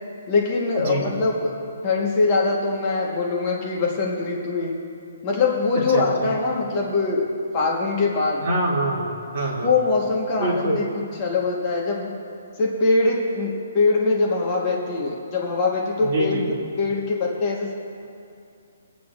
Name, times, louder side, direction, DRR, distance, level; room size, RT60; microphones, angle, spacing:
voice 1, 0.3-1.5 1.8-4.8 5.2-7.2 7.5-8.4 9.6-12.1 12.6-16.4 16.8-17.7, left 3 dB, 20° left, -2 dB, 1.2 m, -22 dB
voice 2, 8.4-9.7 10.4-10.8 16.0-16.4, right 1 dB, 35° right, -4 dB, 2.4 m, -24 dB
22.5 x 8.4 x 2.4 m, 2.5 s
hypercardioid pair, 175°, 0 cm